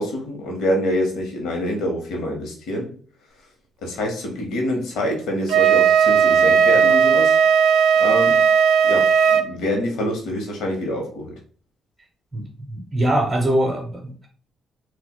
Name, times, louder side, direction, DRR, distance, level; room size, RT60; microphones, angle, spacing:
voice 1, 0.0-2.9 3.8-7.4 8.0-8.5 8.8-11.3, left 1 dB, 85° left, 0.8 m, -26 dB
Wind instrument woodwind instrument, 5.5-9.5, right 7 dB, 80° right, 0.4 m, -16 dB
voice 2, 12.3-14.3, right 1 dB, 20° right, 0.7 m, -23 dB
4.2 x 2.2 x 2.2 m
cardioid pair, 90°, 0 cm